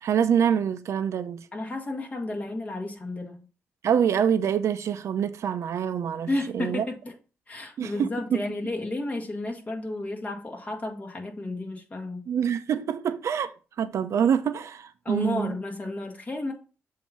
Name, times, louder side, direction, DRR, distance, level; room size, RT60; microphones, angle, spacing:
voice 1, 0.0-1.5 3.8-6.8 7.8-8.4 12.3-15.6, right 8 dB, 70° right, 0.7 m, -26 dB
voice 2, 1.5-3.4 6.3-7.1 7.5-12.3 15.1-16.5, left 2 dB, 30° left, 1.8 m, -32 dB
7.3 x 2.9 x 5.8 m
cardioid pair, 75°, 5 cm